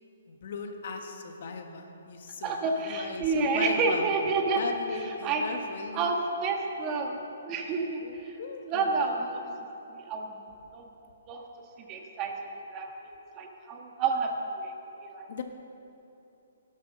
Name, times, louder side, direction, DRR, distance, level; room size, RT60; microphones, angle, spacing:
voice 1, 0.3-4.1 4.6-6.1 8.0-9.3 15.3-15.4, left 4 dB, 55° left, 4 dB, 1.5 m, -38 dB
voice 2, 2.4-4.6 5.2-5.4 5.9-7.2 7.4-8.3 8.7-9.4 9.9-10.3 10.7-10.9 11.3-11.4 11.9-14.7 15.0-15.3, right 4 dB, 20° right, 2 dB, 1.4 m, -29 dB
13.0 x 11.5 x 6.5 m, 2.9 s
hypercardioid pair, 160°, 0 cm